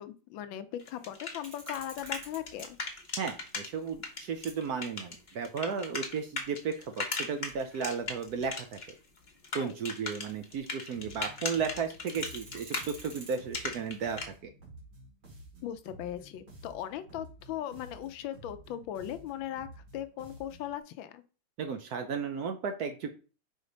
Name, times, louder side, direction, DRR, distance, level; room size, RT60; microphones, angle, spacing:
voice 1, 0.0-2.8 9.5-9.8 15.6-19.7 19.9-21.2, left 11 dB, 75° left, 11 dB, 1.3 m, -38 dB
sound 1, 0.8-3.7 4.0-8.9 9.2-14.2, left 3 dB, 35° left, 0.7 m, -37 dB
sound 2, 1.4-11.0 11.3-11.4 11.7-13.3, right 2 dB, 50° right, 2.2 m, -53 dB
voice 2, 3.2-8.7 9.5-14.2 21.6-23.1, right 6 dB, 70° right, 6 dB, 0.9 m, -34 dB
sound 3, 10.9-20.8, right 1 dB, 90° right, 3.1 m, -52 dB
5.2 x 4.0 x 5.1 m, 0.36 s
omnidirectional pair, 2.2 m